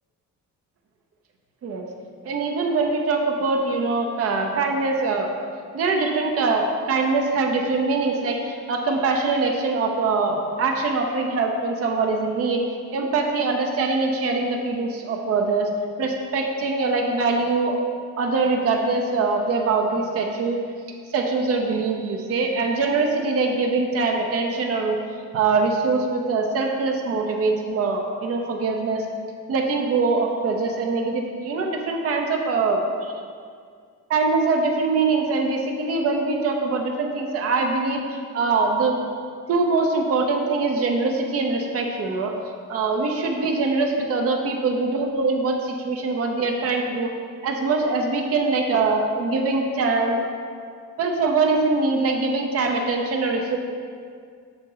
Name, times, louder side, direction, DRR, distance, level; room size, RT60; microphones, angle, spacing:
voice 1, 2.2-5.3 5.7-12.6 12.9-15.7 16.0-17.8 18.2-20.6 21.1-25.0 25.3-29.1 29.5-33.1 34.1-39.0 39.5-42.3 42.7-47.1 47.4-50.2 51.0-53.6, right 3 dB, 50° right, 2 dB, 0.7 m, -23 dB
6.7 x 4.3 x 5.5 m, 2.1 s
cardioid pair, 145°, 31 cm